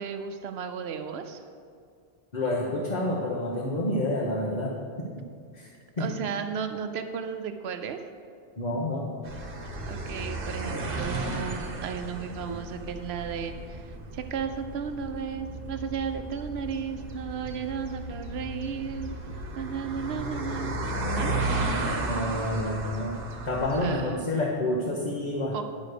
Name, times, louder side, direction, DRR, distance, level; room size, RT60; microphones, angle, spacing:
voice 1, 0.0-1.4 6.0-8.0 9.9-19.1 19.6-21.3 23.7-24.2 25.5-25.6, right 6 dB, 80° right, 7 dB, 0.9 m, -34 dB
voice 2, 2.3-5.2 5.5-5.7 6.0-6.1 8.6-9.1 12.5-12.6 22.0-25.6, left 1 dB, 45° left, -3 dB, 1.1 m, -29 dB
sound 1, 9.2-23.9, right 2 dB, 60° right, 1.2 m, -34 dB
10.0 x 4.9 x 6.7 m, 2.2 s
omnidirectional pair, 1.0 m